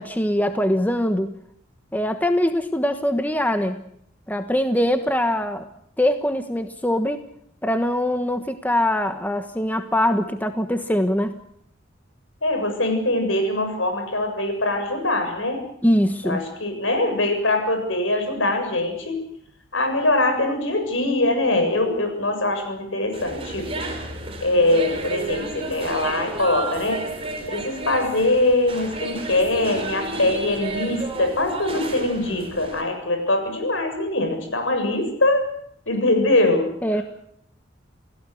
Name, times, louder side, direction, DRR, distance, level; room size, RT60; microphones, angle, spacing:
voice 1, 0.0-1.3 1.9-3.8 4.3-5.7 6.0-7.2 7.6-11.4 15.8-16.4 36.8-37.0, left 1 dB, 10° left, 7 dB, 1.3 m, -22 dB
voice 2, 12.4-15.6 16.2-19.2 19.7-23.7 24.4-27.0 27.5-35.4 35.9-36.7, left 2 dB, 70° left, 6 dB, 7.4 m, -22 dB
sound 1, 23.1-32.8, right 3 dB, 30° right, 5.0 m, -32 dB
28.5 x 17.0 x 8.2 m, 0.70 s
head